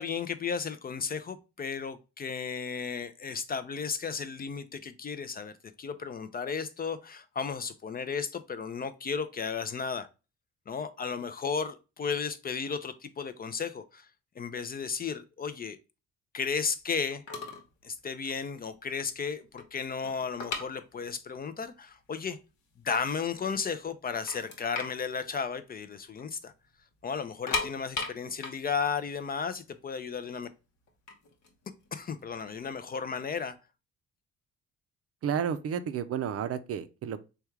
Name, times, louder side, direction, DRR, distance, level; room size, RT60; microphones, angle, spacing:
voice 1, 0.0-10.1 10.7-14.1 14.4-15.8 16.3-17.2 17.8-22.4 22.8-26.5 27.0-30.5 31.9-33.6, left 6 dB, 30° left, 0.4 m, -34 dB
sound 1, 17.3-17.7 18.0-18.2 18.7-18.8 19.1-21.4 21.6-21.7 22.4-22.5 22.8-23.6 23.9-24.0 24.3-26.3 26.5-26.7 27.2-30.1 30.9-32.6, left 4 dB, 70° left, 1.1 m, -37 dB
voice 2, 35.2-37.2, right 8 dB, 50° right, 0.4 m, -31 dB
3.4 x 2.3 x 4.4 m
cardioid pair, 90°, 30 cm